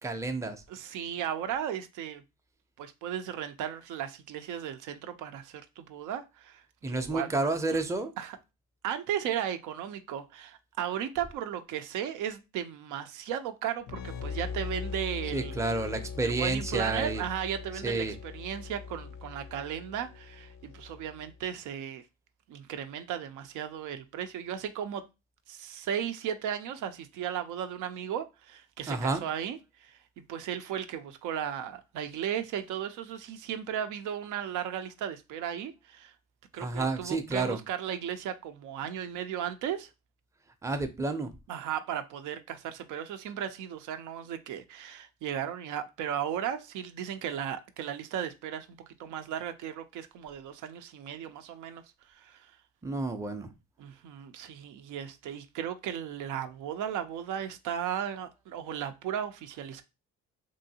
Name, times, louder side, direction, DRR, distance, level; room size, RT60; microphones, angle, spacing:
voice 1, 0.0-0.6 6.8-8.1 15.3-17.2 17.7-18.2 28.9-29.2 36.6-37.6 40.6-41.3 52.8-53.5, right 3 dB, 10° right, 0.4 m, -30 dB
voice 2, 0.7-2.2 2.8-7.3 7.7-7.8 8.2-8.4 8.8-15.5 16.2-22.0 22.5-25.0 25.5-36.1 36.5-39.9 41.5-52.5 53.8-59.8, right 9 dB, 85° right, 0.5 m, -36 dB
sound 1, 13.9-21.4, left 5 dB, 85° left, 0.5 m, -40 dB
3.0 x 2.6 x 2.7 m
cardioid pair, 90°, 30 cm